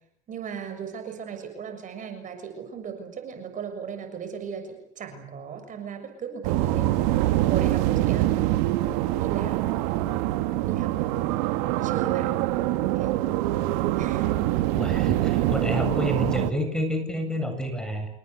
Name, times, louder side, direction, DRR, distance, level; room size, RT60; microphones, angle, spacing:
voice 1, 0.3-8.5 9.2-9.7 10.6-11.0 11.8-12.4 12.9-13.1 14.0-14.3, right 6 dB, 45° right, 7 dB, 6.9 m, -37 dB
sound 1, 6.4-16.5, right 15 dB, 85° right, 2.0 m, -24 dB
voice 2, 14.8-18.1, equal, 5° left, 6 dB, 8.0 m, -28 dB
29.0 x 20.5 x 8.4 m, 0.69 s
supercardioid pair, 105°, 19 cm